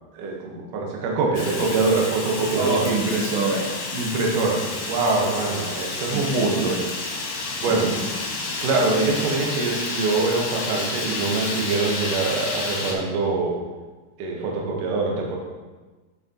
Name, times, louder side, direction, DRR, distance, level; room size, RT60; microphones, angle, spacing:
voice 1, 0.1-2.9 3.9-6.8 7.6-7.9 8.6-13.6 14.2-15.4, right 3 dB, 70° right, -1 dB, 2.2 m, -24 dB
Fire, 1.3-12.9, left 3 dB, 70° left, 1.9 m, -30 dB
voice 2, 2.6-3.8 6.1-6.8, right 3 dB, 85° right, -3 dB, 3.6 m, -25 dB
8.6 x 6.3 x 2.8 m, 1.3 s
omnidirectional pair, 4.9 m